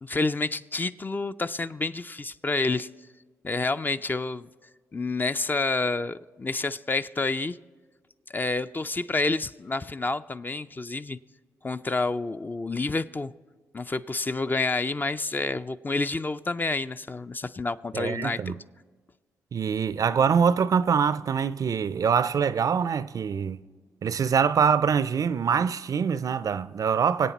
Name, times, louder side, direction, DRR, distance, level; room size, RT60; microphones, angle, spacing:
voice 1, 0.0-2.9 3.4-4.5 4.9-7.6 8.3-11.2 11.6-13.3 13.7-18.6, left 3 dB, 25° left, 0.4 m, -29 dB
voice 2, 17.9-18.5 19.5-23.6 24.0-27.3, right 6 dB, 50° right, 0.4 m, -24 dB
24.0 x 8.5 x 4.1 m
hypercardioid pair, 40°, 8 cm